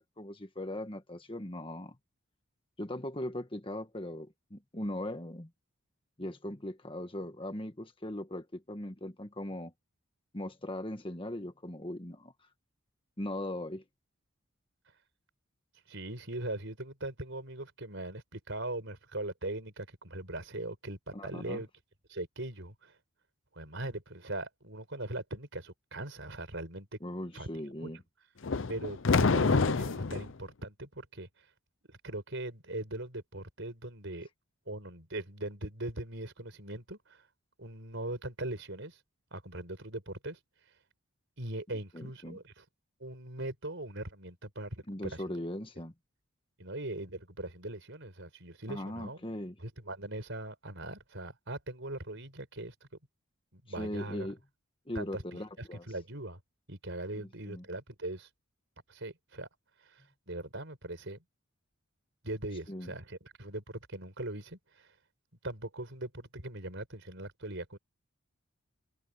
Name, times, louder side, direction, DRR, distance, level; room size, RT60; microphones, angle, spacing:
voice 1, 0.0-2.0 2.8-5.5 6.2-9.7 10.3-12.3 13.2-13.8 21.1-21.6 27.0-28.0 41.9-42.4 44.9-45.9 48.7-49.6 53.8-54.4 54.9-55.8 57.5-57.6 62.7-62.9, left 1 dB, 25° left, 1.5 m, -39 dB
voice 2, 15.9-21.7 22.1-22.9 23.5-26.9 27.3-27.5 27.8-27.9 28.7-31.3 31.9-34.3 34.7-37.2 37.6-39.0 39.3-40.4 41.4-42.6 43.0-45.4 46.6-49.2 49.6-52.7 53.5-54.3 55.0-56.4 56.7-58.3 58.9-59.5 59.9-60.0 60.3-61.2 62.2-64.9 65.4-67.8, right 1 dB, 60° right, 5.4 m, -40 dB
sound 1, 28.4-30.3, left 4 dB, 60° left, 0.6 m, -27 dB
head